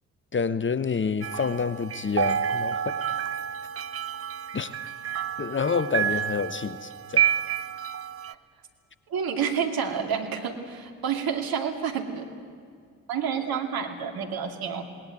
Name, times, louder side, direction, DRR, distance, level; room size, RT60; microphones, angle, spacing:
voice 1, 0.3-3.0 4.5-4.7 5.4-7.2, left 5 dB, 30° left, 15 dB, 1.0 m, -28 dB
sound 1, 1.2-8.3, right 9 dB, 35° right, 0.8 m, -29 dB
voice 2, 9.1-12.2 13.1-14.8, right 7 dB, 60° right, 5 dB, 2.4 m, -29 dB
19.5 x 19.0 x 9.1 m, 2.1 s
hypercardioid pair, 40°, 40 cm